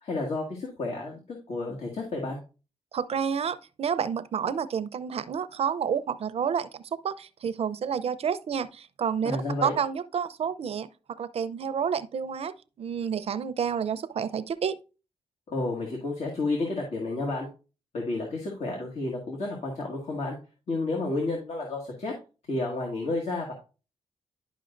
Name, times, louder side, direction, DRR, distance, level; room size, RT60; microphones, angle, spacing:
voice 1, 0.0-2.4 9.2-9.7 15.5-17.5 17.9-20.4 20.7-22.1 22.5-23.5, left 2 dB, 65° left, 1.9 m, -31 dB
voice 2, 2.9-14.8, right 7 dB, 65° right, 0.6 m, -30 dB
11.0 x 5.5 x 2.6 m
cardioid pair, 95°, 11 cm